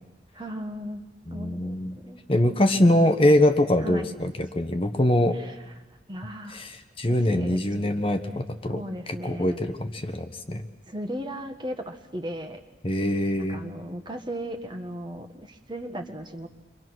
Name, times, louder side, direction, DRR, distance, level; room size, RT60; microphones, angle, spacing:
voice 1, 0.3-2.2 3.8-4.1 5.3-5.5 6.1-6.7 7.1-7.6 8.7-9.6 10.9-12.6 13.4-16.5, equal, 25° right, 5 dB, 1.6 m, -36 dB
voice 2, 1.3-2.0 2.3-5.4 6.5-10.7 12.8-13.6, left 1 dB, 30° left, 6 dB, 1.1 m, -23 dB
29.0 x 24.0 x 6.3 m, 1.1 s
head